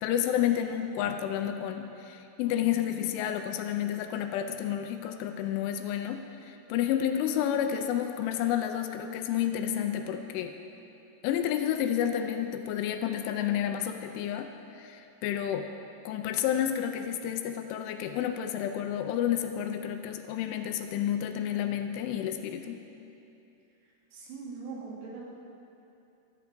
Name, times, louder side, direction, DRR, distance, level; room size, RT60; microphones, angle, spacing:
voice 1, 0.0-10.5 11.2-15.7 16.1-22.8, left 10 dB, 80° left, 6 dB, 2.9 m, -30 dB
voice 2, 24.1-25.2, right 4 dB, 85° right, -4 dB, 5.2 m, -41 dB
14.5 x 13.5 x 5.2 m, 2.8 s
omnidirectional pair, 5.7 m